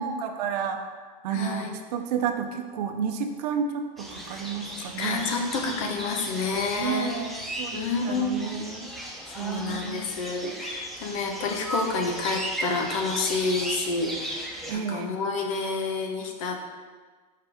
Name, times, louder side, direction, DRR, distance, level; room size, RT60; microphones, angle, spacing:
voice 1, 0.0-5.3 6.7-8.9 9.4-10.1 14.7-15.1, right 7 dB, 70° right, 6 dB, 0.7 m, -31 dB
voice 2, 1.3-1.7 4.8-7.1 7.7-8.5 9.3-16.6, left 4 dB, 55° left, 3 dB, 0.9 m, -29 dB
sound 1, 4.0-14.7, right 1 dB, ahead, 0.5 m, -36 dB
5.6 x 5.3 x 3.4 m, 1.4 s
supercardioid pair, 165°, 21 cm